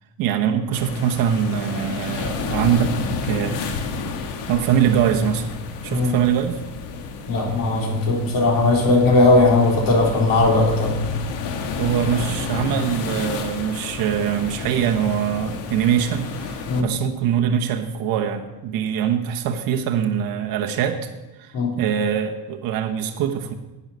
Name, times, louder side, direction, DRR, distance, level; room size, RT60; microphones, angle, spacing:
voice 1, 0.2-3.6 4.5-5.5 5.8-6.6 11.8-21.1 21.4-23.5, right 8 dB, 50° right, 3 dB, 1.1 m, -23 dB
sound 1, 0.7-16.8, left 5 dB, 70° left, 1.6 m, -30 dB
voice 2, 7.3-11.0 16.7-16.9 21.5-21.7, left 2 dB, 50° left, -2 dB, 3.8 m, -18 dB
11.0 x 9.3 x 5.6 m, 1.1 s
cardioid pair, 150°, 43 cm